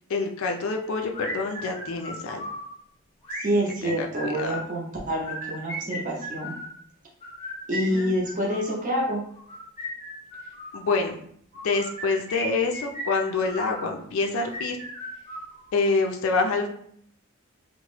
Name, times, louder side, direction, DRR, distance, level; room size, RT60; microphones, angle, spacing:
voice 1, 0.1-2.4 3.8-4.6 7.9-8.1 10.7-11.2 11.6-14.8 15.7-16.7, left 3 dB, 65° left, 3 dB, 0.4 m, -26 dB
sound 1, 1.1-2.7 3.2-4.7 5.2-6.7 7.2-8.8 9.4-10.8 11.5-13.8 14.4-15.9, equal, 25° left, 0.8 m, -36 dB
voice 2, 3.4-6.6 7.7-9.2, equal, 35° right, -3 dB, 0.6 m, -27 dB
2.9 x 2.0 x 3.0 m, 0.65 s
head